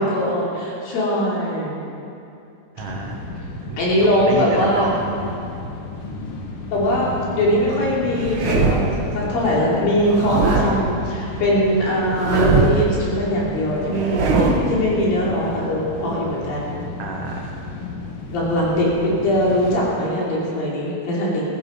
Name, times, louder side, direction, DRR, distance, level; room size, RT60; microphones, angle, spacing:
voice 1, 0.0-1.8 3.8-5.0 6.7-16.7 18.3-21.4, equal, 80° left, -5 dB, 4.9 m, -21 dB
sound 1, 2.8-19.8, left 3 dB, 55° left, 1.9 m, -33 dB
voice 2, 2.8-3.8 4.1-5.0 17.0-17.6, right 4 dB, 80° right, 0 dB, 1.3 m, -29 dB
sound 2, 8.1-9.0 10.1-10.9 12.1-12.9 13.9-14.8, right 4 dB, 60° right, 1.4 m, -21 dB
14.0 x 13.5 x 5.4 m, 2.6 s
omnidirectional pair, 4.1 m